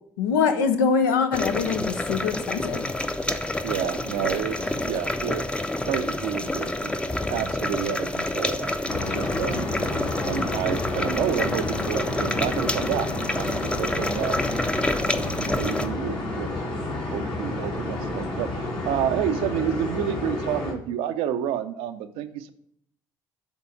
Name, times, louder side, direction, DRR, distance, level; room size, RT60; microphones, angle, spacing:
voice 1, 0.2-2.9, left 5 dB, 90° left, 7 dB, 0.5 m, -23 dB
sound 1, 1.3-15.9, left 1 dB, 10° left, 0.6 m, -28 dB
voice 2, 3.6-5.5 5.9-9.7 10.3-14.4 15.0-16.7 17.1-22.5, right 10 dB, 75° right, 10 dB, 0.5 m, -30 dB
sound 2, 8.9-20.7, left 2 dB, 60° left, 1.9 m, -30 dB
7.2 x 3.7 x 5.6 m, 0.69 s
hypercardioid pair, 55°, 10 cm